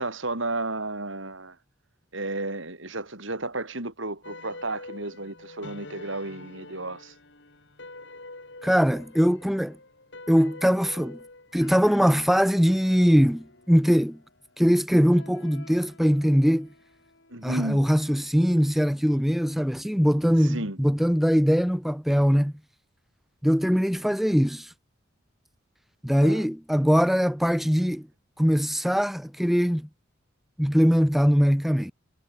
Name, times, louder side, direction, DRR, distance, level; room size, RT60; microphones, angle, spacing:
voice 1, 0.0-1.6 2.1-7.1 17.3-17.9 20.4-20.8 26.2-26.4, right 2 dB, 75° right, 6.0 m, -33 dB
sound 1, 4.2-18.7, left 2 dB, 60° left, 3.7 m, -47 dB
voice 2, 8.6-9.8 10.3-11.2 11.5-14.2 14.6-16.7 17.4-22.5 23.4-24.7 26.0-28.1 28.4-29.9 30.6-31.9, equal, ahead, 0.6 m, -21 dB
head